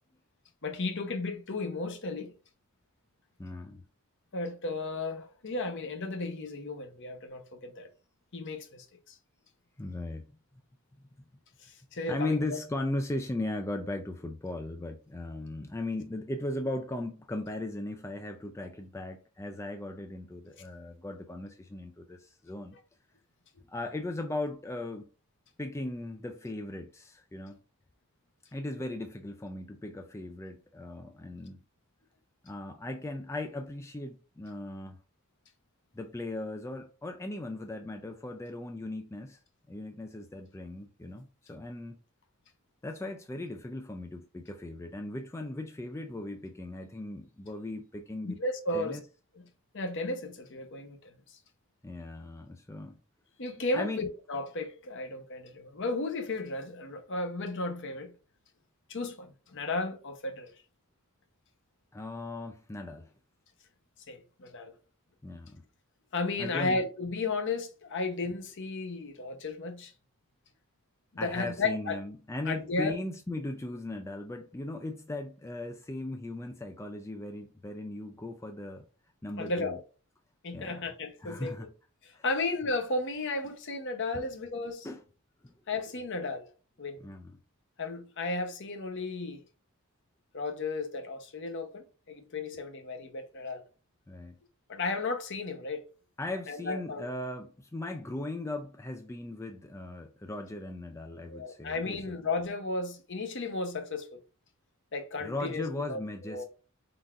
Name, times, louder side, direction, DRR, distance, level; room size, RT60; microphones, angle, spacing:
voice 1, 0.6-2.3 4.3-7.9 8.3-9.2 11.6-12.6 20.6-20.7 48.2-49.0 49.3-49.4 49.7-51.4 53.4-58.1 58.9-60.5 64.1-64.7 66.1-69.9 71.1-72.0 72.5-73.0 79.4-79.8 80.4-81.6 82.0-84.9 85.7-86.5 86.8-87.0 87.8-89.4 90.3-93.6 94.7-95.8 96.5-97.1 101.2-104.2 104.9-106.4, left 3 dB, 55° left, 0.8 m, -34 dB
voice 2, 3.4-3.8 9.8-10.3 12.1-22.8 23.7-25.1 25.6-27.6 28.5-31.6 32.4-35.0 35.9-39.4 39.7-42.0 42.8-48.4 48.7-49.0 51.8-53.0 53.7-54.0 61.9-63.1 65.2-65.6 66.4-66.8 71.2-78.9 79.2-79.8 80.5-80.8 81.2-81.7 82.1-82.2 84.2-84.3 84.8-85.0 85.4-85.5 87.0-87.4 94.1-94.4 96.2-102.2 105.2-106.4, left 2 dB, 10° left, 0.3 m, -38 dB
4.4 x 3.9 x 2.4 m
head